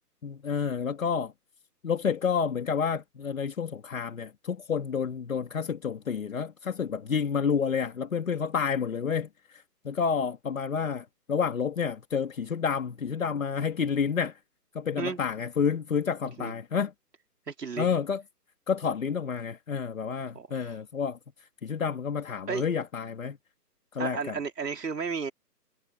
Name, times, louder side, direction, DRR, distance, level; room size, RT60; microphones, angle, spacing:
voice 1, 0.2-1.3 1.8-14.3 14.7-16.9 17.8-18.2 18.7-21.2 21.6-23.4 23.9-24.4, left 6 dB, 55° left, 2.5 m, -29 dB
voice 2, 17.5-17.9 20.3-20.8 22.5-22.6 24.0-25.3, right 5 dB, 75° right, 4.0 m, -33 dB
hypercardioid pair, 175°, 49 cm